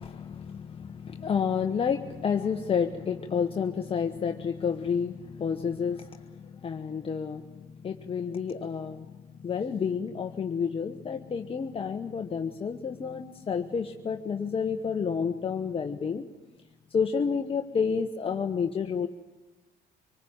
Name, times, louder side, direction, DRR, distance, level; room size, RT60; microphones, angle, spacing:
voice 1, 0.0-16.2 16.9-19.1, left 6 dB, 35° left, 4 dB, 1.1 m, -30 dB
25.0 x 20.0 x 8.9 m, 1.1 s
cardioid pair, 110°, 17 cm